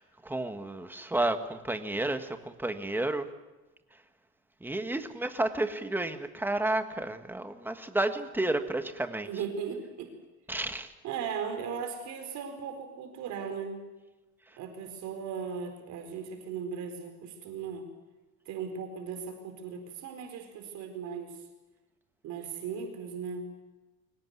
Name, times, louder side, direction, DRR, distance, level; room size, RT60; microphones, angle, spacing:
voice 1, 0.0-3.3 4.6-9.3 10.5-10.9, right 2 dB, 5° right, 8 dB, 1.5 m, -31 dB
voice 2, 9.3-10.1 11.0-13.8 14.6-17.9 18.4-21.4 22.2-23.5, right 6 dB, 60° right, 5 dB, 4.4 m, -37 dB
24.0 x 18.5 x 9.7 m, 1.1 s
cardioid pair, 145°, 32 cm